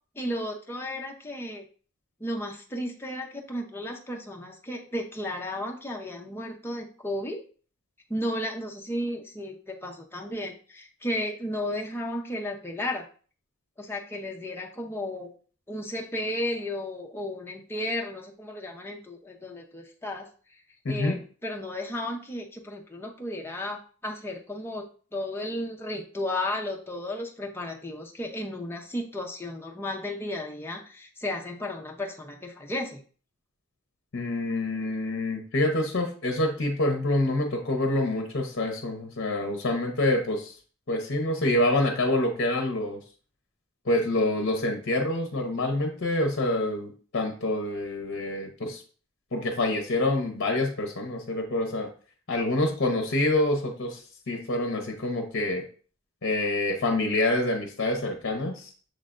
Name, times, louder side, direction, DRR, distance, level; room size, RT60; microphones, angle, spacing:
voice 1, 0.2-1.6 2.2-7.4 8.1-13.1 13.8-15.3 15.7-20.3 20.9-24.8 25.1-33.0, left 1 dB, 10° left, 0 dB, 0.6 m, -34 dB
voice 2, 20.8-21.2 34.1-40.5 40.9-43.0 43.8-48.8 49.3-51.9 52.3-55.6 56.2-58.7, left 1 dB, 55° left, 3 dB, 0.7 m, -27 dB
6.3 x 3.2 x 2.5 m, 0.40 s
head